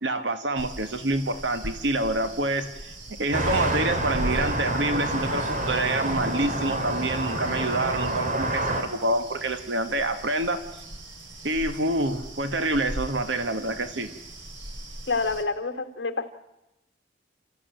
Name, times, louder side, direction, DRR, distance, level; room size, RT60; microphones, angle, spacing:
voice 1, 0.0-2.9 3.2-10.6 11.4-14.1, right 2 dB, 70° right, 9 dB, 1.4 m, -27 dB
sound 1, 0.5-15.4, right 1 dB, 85° right, 3.3 m, -40 dB
sound 2, 3.3-8.8, right 1 dB, 45° right, 3.0 m, -28 dB
voice 2, 15.1-16.3, left 4 dB, 65° left, 6 dB, 1.8 m, -28 dB
29.5 x 14.0 x 9.1 m, 0.95 s
head